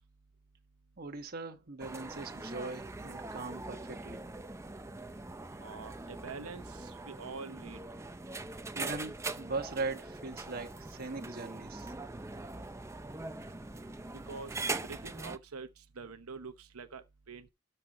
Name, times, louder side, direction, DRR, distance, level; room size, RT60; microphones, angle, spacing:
voice 1, 1.0-4.2 8.7-11.9, right 3 dB, 45° right, 1.2 m, -40 dB
sound 1, 1.8-15.4, right 2 dB, 15° right, 0.6 m, -42 dB
voice 2, 5.6-7.8 14.2-17.5, right 4 dB, 80° right, 0.9 m, -46 dB
12.5 x 4.4 x 5.1 m
head